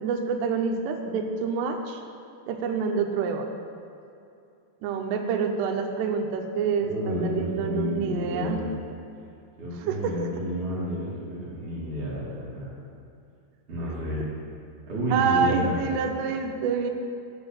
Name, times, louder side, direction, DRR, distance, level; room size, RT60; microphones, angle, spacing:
voice 1, 0.0-2.0 2.5-3.5 4.8-8.7 9.9-10.3 15.1-16.9, right 5 dB, 85° right, 3 dB, 2.5 m, -27 dB
voice 2, 6.8-8.6 9.6-12.7 13.7-14.2 14.9-15.8, equal, 45° right, -8 dB, 3.2 m, -30 dB
10.5 x 4.3 x 7.3 m, 2.5 s
omnidirectional pair, 5.6 m